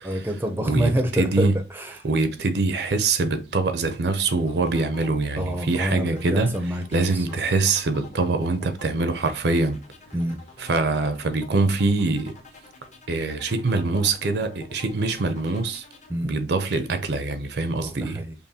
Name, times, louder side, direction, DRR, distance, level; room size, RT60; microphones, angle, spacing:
voice 1, 0.0-2.1 5.3-7.3 10.1-10.4 16.1-16.3 17.8-18.3, equal, 10° right, 0.5 m, -27 dB
voice 2, 1.2-1.5 2.0-6.5 6.9-9.8 10.6-12.4 13.1-15.8 16.2-18.2, right 3 dB, 65° right, 0.5 m, -24 dB
sound 1, 4.1-16.1, left 3 dB, 40° left, 0.8 m, -48 dB
5.4 x 2.2 x 2.7 m
head